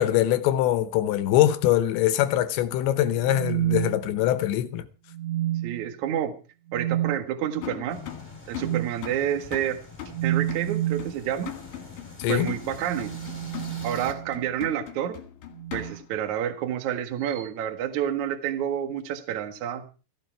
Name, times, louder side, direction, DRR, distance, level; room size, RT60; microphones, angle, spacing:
voice 1, 0.0-4.8 12.2-12.6, left 12 dB, 75° left, 2.8 m, -23 dB
sound 1, 3.2-4.5 5.1-5.9 6.7-7.2 8.6-8.9 10.1-11.1 12.6-14.5 15.5-16.0 17.2-17.5, right 13 dB, 85° right, 4.4 m, -30 dB
voice 2, 5.6-6.4 6.7-8.0 8.5-9.8 10.2-11.5 12.3-13.1 13.8-15.2 15.7-19.8, right 10 dB, 65° right, 1.9 m, -29 dB
sound 2, 7.6-16.2, left 11 dB, 55° left, 2.8 m, -41 dB
sound 3, 7.9-14.1, left 3 dB, 10° left, 2.8 m, -45 dB
16.0 x 15.0 x 4.6 m
omnidirectional pair, 5.9 m